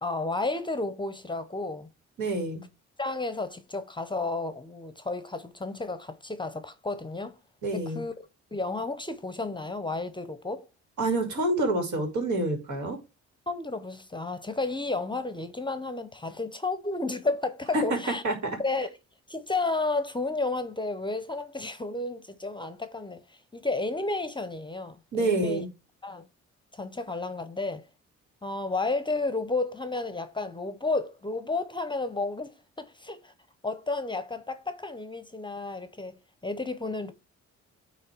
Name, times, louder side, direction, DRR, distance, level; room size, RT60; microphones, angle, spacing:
voice 1, 0.0-1.9 3.0-7.4 7.7-8.1 8.5-10.6 13.5-18.2 18.6-19.0 19.3-25.6 26.0-26.3 26.7-27.9 28.4-33.3 33.6-37.1, left 3 dB, 15° left, 0.7 m, -32 dB
voice 2, 2.2-2.6 7.6-8.0 11.0-13.0 17.7-17.8 18.2-18.5 25.1-25.7, right 2 dB, 70° right, 2.7 m, -27 dB
9.2 x 3.2 x 4.5 m
cardioid pair, 90°, 30 cm